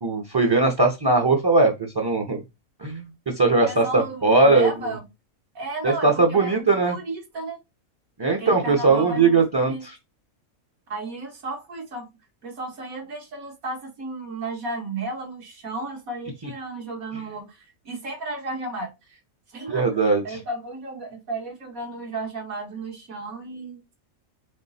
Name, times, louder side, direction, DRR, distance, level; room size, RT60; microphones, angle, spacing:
voice 1, 0.0-2.4 2.8-4.7 5.8-7.0 8.2-10.0 16.4-16.5 19.7-20.2, right 3 dB, 30° right, 0.5 m, -20 dB
voice 2, 3.7-5.0 5.6-7.6 8.3-9.8 10.9-12.1 12.4-19.2 19.5-19.9 20.2-23.8, right 2 dB, 80° right, 1.9 m, -34 dB
3.7 x 3.2 x 4.1 m
omnidirectional pair, 1.4 m